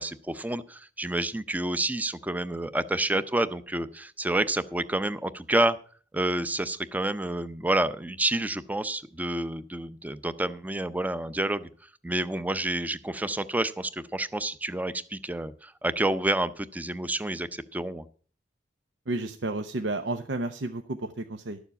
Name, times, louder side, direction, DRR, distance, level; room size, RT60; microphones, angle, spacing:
voice 1, 0.0-5.8 6.1-11.7 12.0-18.0, right 1 dB, 10° right, 14 dB, 0.6 m, -29 dB
voice 2, 19.1-21.6, right 2 dB, 75° right, 8 dB, 0.8 m, -32 dB
12.0 x 7.2 x 6.9 m, 0.43 s
head